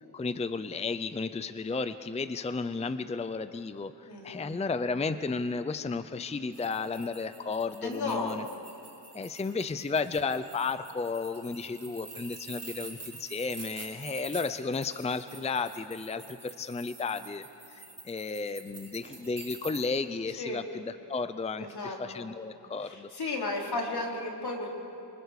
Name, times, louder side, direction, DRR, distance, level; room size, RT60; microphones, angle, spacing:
voice 1, 0.1-8.4 9.1-23.1, left 4 dB, 15° left, 12 dB, 0.5 m, -33 dB
voice 2, 4.1-4.4 7.8-8.4 20.4-20.6 21.5-22.2 22.8-24.7, left 2 dB, 75° left, 0 dB, 3.4 m, -34 dB
sound 1, 6.5-19.8, right 3 dB, 40° right, 4.9 m, -47 dB
27.5 x 25.0 x 4.8 m, 3.0 s
wide cardioid pair, 155°, 39 cm